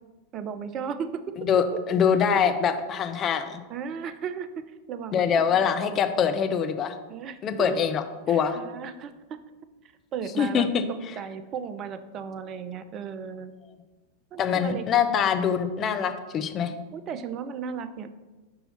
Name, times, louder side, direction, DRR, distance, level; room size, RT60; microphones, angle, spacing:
voice 1, 0.3-1.8 3.7-5.6 7.1-7.9 8.3-9.4 10.1-10.7 11.2-13.5 14.3-14.9 16.9-18.1, right 7 dB, 30° right, 11 dB, 0.5 m, -35 dB
voice 2, 1.4-3.6 5.1-6.9 7.4-8.6 10.4-10.8 14.4-16.7, left 7 dB, 30° left, 8 dB, 0.5 m, -24 dB
5.6 x 4.2 x 5.4 m, 1.2 s
figure-of-eight pair, 90°, 0 cm